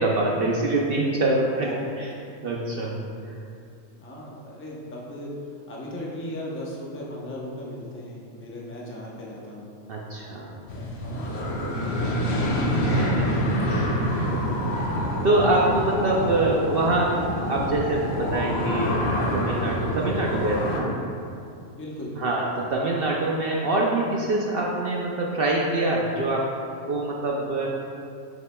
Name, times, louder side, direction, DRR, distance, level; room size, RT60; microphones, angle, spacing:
voice 1, 0.0-1.7 2.4-3.0 3.3-3.4 9.9-10.6 12.8-13.9 14.2-14.4 14.7-17.2 17.5-21.0 22.2-26.5 26.8-27.8, right 2 dB, 65° right, -2 dB, 0.6 m, -25 dB
voice 2, 1.5-2.0 4.0-5.3 5.7-9.7 10.7-12.6 13.5-14.0 21.7-22.4, left 1 dB, 15° left, -4 dB, 0.5 m, -37 dB
sound 1, 10.7-20.8, equal, 55° left, 0.9 m, -26 dB
7.0 x 6.5 x 2.2 m, 2.4 s
omnidirectional pair, 1.5 m